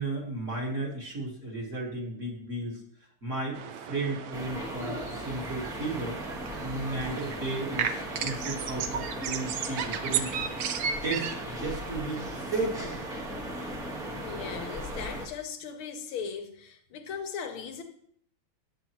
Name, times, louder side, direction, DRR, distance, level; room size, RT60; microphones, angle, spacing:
voice 1, 0.0-2.8 3.2-6.2 6.6-10.4 11.0-13.0, right 2 dB, 40° right, 1.6 m, -34 dB
sound 1, 3.5-15.2, right 8 dB, 75° right, 1.3 m, -36 dB
sound 2, 4.3-15.3, equal, 5° right, 0.6 m, -38 dB
voice 2, 14.2-17.8, left 7 dB, 80° left, 1.6 m, -38 dB
8.8 x 8.2 x 2.9 m
omnidirectional pair, 2.3 m